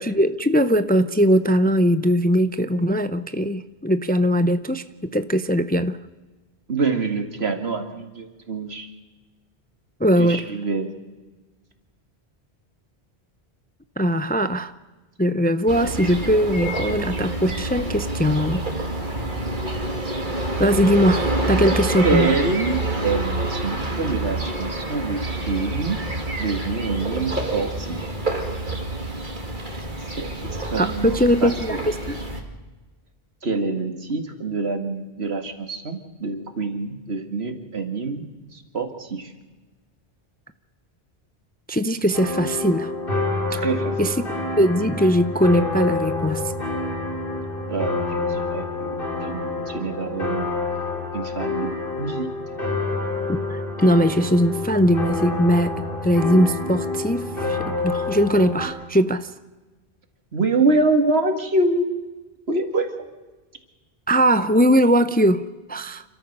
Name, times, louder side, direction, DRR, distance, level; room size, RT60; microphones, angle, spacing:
voice 1, 0.0-4.9 5.1-6.0 10.0-10.5 14.0-14.7 15.2-18.6 20.6-22.3 30.8-32.2 41.7-42.9 44.0-46.5 53.3-59.3 64.1-66.0, equal, 10° left, 12 dB, 0.5 m, -20 dB
voice 2, 6.7-8.9 10.2-10.9 22.0-26.0 26.4-28.1 30.1-31.8 33.4-38.2 38.5-39.3 43.5-44.0 47.7-50.5 51.1-52.3 60.3-62.0 62.5-63.1, right 3 dB, 80° right, 6 dB, 2.3 m, -26 dB
sound 1, 15.7-32.4, right 2 dB, 50° right, 2.5 m, -27 dB
sound 2, 42.1-58.7, left 3 dB, 60° left, 3.7 m, -28 dB
29.0 x 13.5 x 6.7 m, 1.2 s
omnidirectional pair, 1.0 m